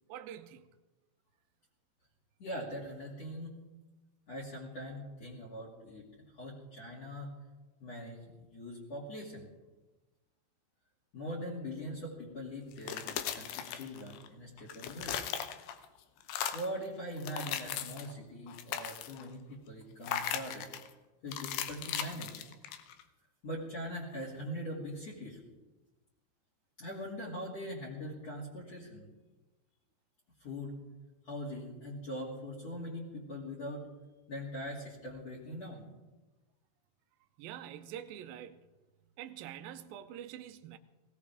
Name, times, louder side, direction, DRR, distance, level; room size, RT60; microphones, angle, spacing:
voice 1, 0.1-0.7 37.4-38.6 39.2-40.8, right 10 dB, 85° right, 2.1 m, -45 dB
voice 2, 2.4-3.5 4.3-6.0 6.4-7.3 7.8-9.5 11.1-15.2 16.5-20.7 21.2-22.4 23.4-25.4 26.8-29.1 30.4-30.8 31.2-33.8 34.3-35.9, equal, 40° left, 3.2 m, -42 dB
sound 1, 12.7-14.3 14.6-15.9 16.2-16.8 17.2-18.1 18.5-19.3 20.0-20.9 21.3-23.0, left 9 dB, 80° left, 2.1 m, -38 dB
19.5 x 17.0 x 3.6 m
omnidirectional pair, 5.0 m